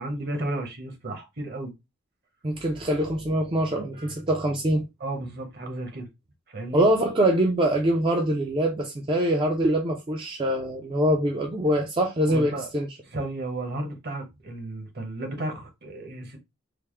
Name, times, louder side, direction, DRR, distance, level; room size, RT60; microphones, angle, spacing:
voice 1, 0.0-1.7 5.0-6.0 6.5-6.9 12.3-12.7 13.1-16.4, right 2 dB, 55° right, 1.0 m, -33 dB
voice 2, 2.4-4.8 6.7-13.0, right 1 dB, 25° right, 0.4 m, -24 dB
3.3 x 2.0 x 3.2 m
head